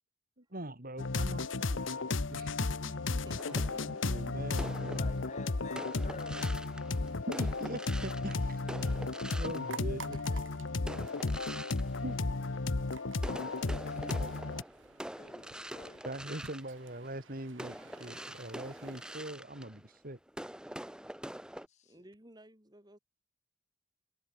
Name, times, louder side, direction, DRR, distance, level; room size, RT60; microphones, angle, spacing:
voice 1, 0.4-2.8 3.5-3.6 4.0-5.1 7.3-9.0 9.4-10.2 12.0-12.2 14.0-14.3 16.0-20.2, right 1 dB, 45° right, 3.3 m, -42 dB
sound 1, 1.0-14.6, left 3 dB, 75° left, 1.0 m, -34 dB
voice 2, 2.8-4.0 9.3-9.5 10.3-10.4 10.6-10.8 21.8-23.0, right 1 dB, 20° right, 4.4 m, -55 dB
sound 2, 3.4-10.3 10.8-12.8 13.2-21.7, right 1 dB, 5° right, 0.7 m, -46 dB
voice 3, 4.6-6.4 13.8-14.1 15.2-16.0, left 3 dB, 35° left, 0.8 m, -49 dB
sound 3, 9.7-19.4, right 4 dB, 75° right, 3.0 m, -53 dB
head